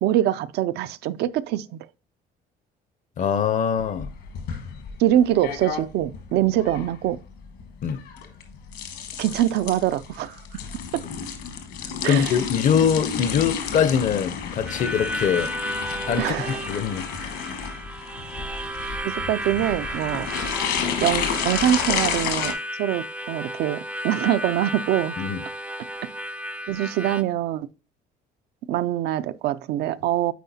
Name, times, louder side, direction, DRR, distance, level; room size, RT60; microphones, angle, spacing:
voice 1, 0.0-1.8 5.0-7.2 9.2-10.4 10.9-11.0 12.0-12.4 16.2-16.6 19.0-20.3 21.0-25.1 26.7-27.7 28.7-30.3, right 12 dB, 75° right, 0.4 m, -24 dB
voice 2, 3.2-4.1 7.8-8.0 12.0-15.5 16.1-17.3 25.2-25.4, left 7 dB, 50° left, 0.5 m, -23 dB
sound 1, 3.8-22.5, left 7 dB, 80° left, 1.2 m, -31 dB
Harmonica, 14.7-27.2, right 1 dB, 10° right, 0.3 m, -33 dB
9.2 x 4.2 x 2.7 m
cardioid pair, 110°, 17 cm